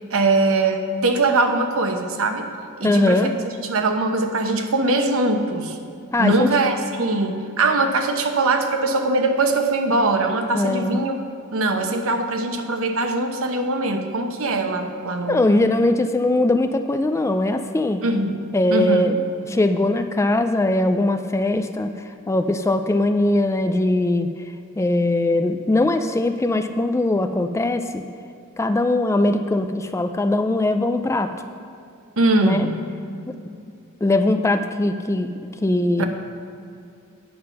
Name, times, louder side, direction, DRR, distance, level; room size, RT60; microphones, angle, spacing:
voice 1, 0.1-2.5 2.8-3.3 3.6-5.8 6.2-11.2 11.5-15.5 18.0-18.4 18.7-19.1 32.2-32.8 36.0-36.1, right 2 dB, 65° right, 5 dB, 1.0 m, -21 dB
voice 2, 2.8-3.3 6.1-6.5 10.5-11.0 15.3-18.0 18.5-19.2 19.5-21.9 22.3-24.3 24.8-28.0 28.6-31.3 32.4-32.7 33.3-33.4 34.0-35.3 35.6-36.0, left 2 dB, 15° left, 8 dB, 0.3 m, -20 dB
9.4 x 7.5 x 5.8 m, 2.5 s
head